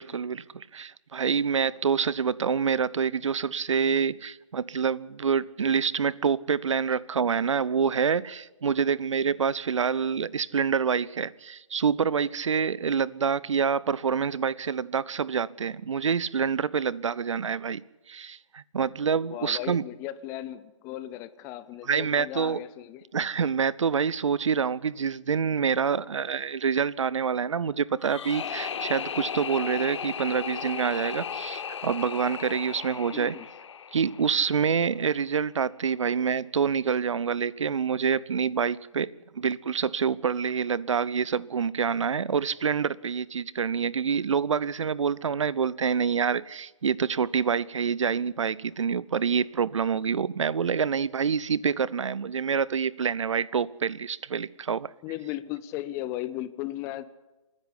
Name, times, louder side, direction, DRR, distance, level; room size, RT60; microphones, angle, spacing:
voice 1, 0.0-17.8 18.1-19.8 21.8-22.6 23.1-33.4 33.9-54.9, right 6 dB, 65° right, 0.7 m, -27 dB
voice 2, 19.3-23.1 33.1-33.5 55.0-57.1, left 14 dB, 15° left, 0.6 m, -36 dB
sound 1, 28.0-35.0, left 7 dB, 60° left, 0.6 m, -36 dB
28.0 x 10.5 x 9.9 m
figure-of-eight pair, 140°, 17 cm